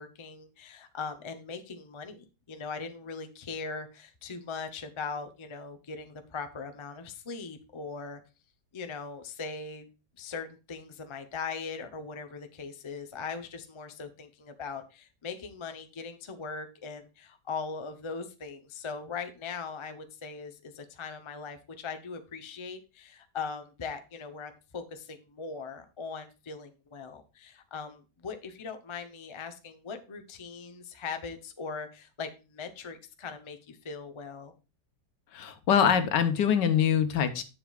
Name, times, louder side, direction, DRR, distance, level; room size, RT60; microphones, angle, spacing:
voice 1, 0.0-8.2 8.7-9.9 10.2-34.5, left 5 dB, 40° left, 7 dB, 0.4 m, -40 dB
voice 2, 35.3-37.4, left 8 dB, 85° left, 9 dB, 1.6 m, -24 dB
10.5 x 7.0 x 2.3 m, 0.31 s
omnidirectional pair, 1.9 m